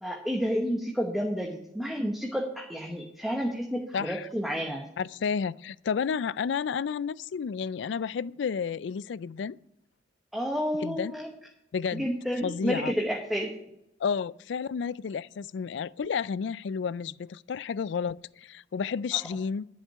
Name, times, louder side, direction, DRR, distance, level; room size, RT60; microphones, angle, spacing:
voice 1, 0.0-4.9 10.3-11.3 11.9-13.5, equal, ahead, 1.1 m, -30 dB
voice 2, 3.9-4.3 5.0-9.6 10.8-11.1 11.7-12.1 12.4-12.9 14.0-19.7, left 6 dB, 65° left, 0.3 m, -31 dB
11.0 x 5.4 x 8.6 m
head